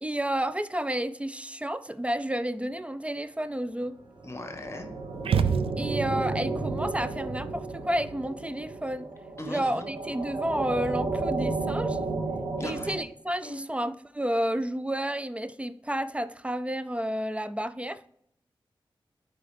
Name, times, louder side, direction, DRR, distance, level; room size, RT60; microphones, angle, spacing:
voice 1, 0.0-4.0 5.8-9.1 9.5-12.0 12.6-18.0, right 1 dB, 15° right, 0.4 m, -31 dB
voice 2, 4.2-4.9 9.4-9.9 12.6-12.9 13.4-13.7, left 1 dB, 30° left, 1.4 m, -38 dB
sound 1, 4.2-13.0, right 3 dB, 55° right, 1.3 m, -32 dB
sound 2, 5.2-6.3, right 7 dB, 90° right, 0.4 m, -26 dB
8.0 x 5.0 x 3.3 m
cardioid pair, 45°, 9 cm